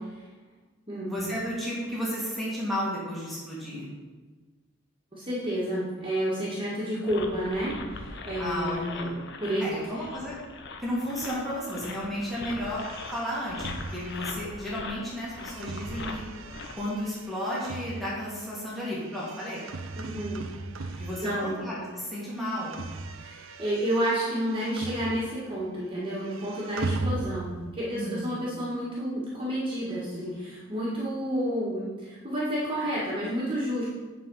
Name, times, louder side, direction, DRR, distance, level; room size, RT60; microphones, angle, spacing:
voice 1, 1.0-3.9 8.4-9.1 9.6-10.4 10.8-16.2 16.7-19.6 21.0-22.8 27.9-28.5, equal, ahead, -8 dB, 2.0 m, -33 dB
voice 2, 5.1-9.0 9.4-10.0 20.0-20.4 20.8-21.6 23.2-33.8, equal, 25° right, -8 dB, 1.7 m, -30 dB
sound 1, 7.1-17.0, left 3 dB, 55° left, 0.7 m, -41 dB
sound 2, 12.6-21.9 22.1-25.6 25.8-27.7, right 3 dB, 65° right, 0.6 m, -39 dB
9.3 x 4.1 x 5.5 m, 1.3 s
head